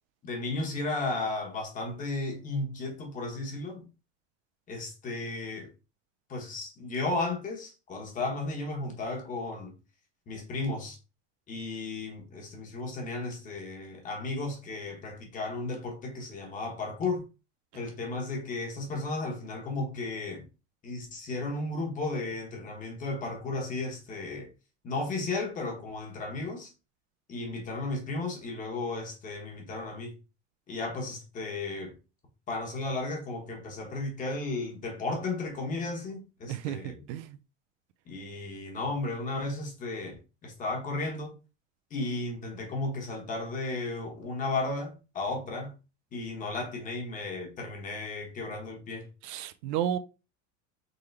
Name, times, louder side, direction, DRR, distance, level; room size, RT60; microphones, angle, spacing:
voice 1, 0.2-3.8 4.7-5.7 6.3-9.7 10.3-11.0 11.5-17.2 17.7-20.4 20.8-24.5 24.8-26.7 27.3-30.1 30.7-31.9 32.5-37.0 38.1-40.1 40.4-41.3 41.9-45.7 46.1-49.0, left 3 dB, 20° left, 1.1 m, -34 dB
voice 2, 36.5-37.3 49.2-50.0, right 10 dB, 70° right, 0.5 m, -32 dB
3.9 x 3.4 x 3.2 m
cardioid pair, 170°, 37 cm